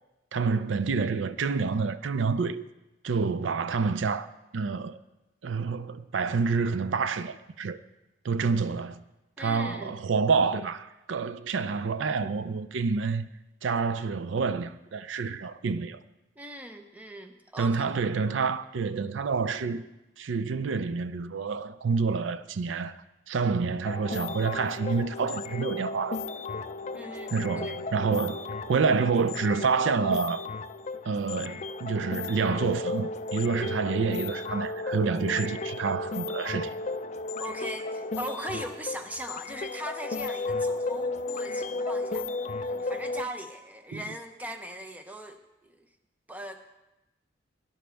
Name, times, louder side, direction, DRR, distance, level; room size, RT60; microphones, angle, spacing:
voice 1, 0.3-2.7 3.0-4.3 4.5-5.0 5.4-7.8 8.2-9.0 9.4-13.3 13.6-16.0 17.6-19.9 20.2-26.2 27.3-30.4 31.1-36.7 43.9-44.0, right 5 dB, 80° right, 0.5 m, -28 dB
voice 2, 9.4-10.0 16.4-18.0 26.9-27.8 37.4-42.3 42.6-45.9 46.3-46.6, right 1 dB, 10° right, 0.7 m, -40 dB
sound 1, 23.8-43.2, left 3 dB, 35° left, 0.3 m, -34 dB
17.5 x 11.0 x 3.4 m
head